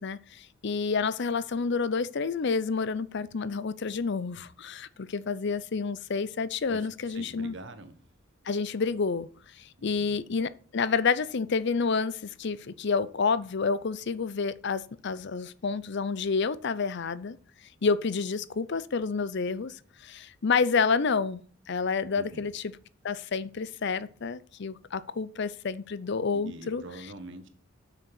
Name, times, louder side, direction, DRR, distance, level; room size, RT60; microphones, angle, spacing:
voice 1, 0.0-7.5 8.5-9.3 9.6-17.4 17.8-21.4 21.7-22.8 23.0-26.8, left 5 dB, 60° left, 0.6 m, -29 dB
voice 2, 6.7-8.0 9.8-10.2 22.2-22.4 26.3-27.5, right 2 dB, 65° right, 1.5 m, -45 dB
8.4 x 6.8 x 6.1 m
head